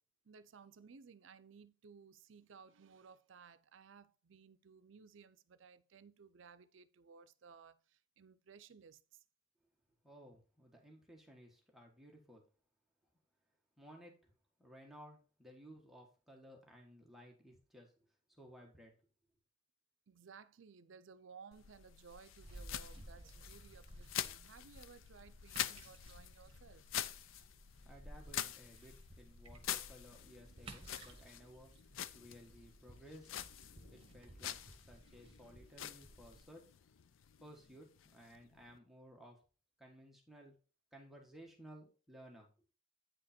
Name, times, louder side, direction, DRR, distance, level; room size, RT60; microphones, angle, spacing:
voice 1, 0.2-9.2 20.1-26.9, right 5 dB, 75° right, 0.5 m, -59 dB
voice 2, 10.0-12.4 13.8-14.3 14.6-17.9 18.4-18.9 27.8-31.7 32.1-33.4 33.9-36.6 37.4-39.4 39.8-40.6 40.9-42.5, equal, ahead, 1.4 m, -58 dB
sound 1, 21.5-38.8, left 10 dB, 85° left, 0.5 m, -47 dB
sound 2, 22.4-36.4, right 1 dB, 30° right, 1.7 m, -57 dB
9.1 x 5.0 x 4.3 m
head